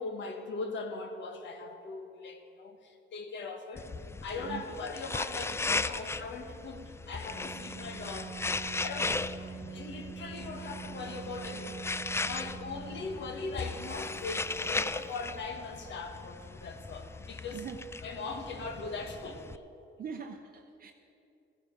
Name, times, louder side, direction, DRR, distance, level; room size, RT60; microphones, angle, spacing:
voice 1, 0.0-3.9 4.2-8.4 8.8-17.7 18.0-19.6, left 3 dB, 65° left, 5 dB, 1.3 m, -40 dB
sound 1, 3.8-19.6, left 3 dB, 15° left, 0.3 m, -37 dB
Keyboard (musical), 7.3-15.4, right 6 dB, 20° right, 1.8 m, -45 dB
voice 2, 20.0-20.9, right 6 dB, 45° right, 5 dB, 0.6 m, -41 dB
15.0 x 10.5 x 5.1 m, 2.8 s
cardioid pair, 90°, 20 cm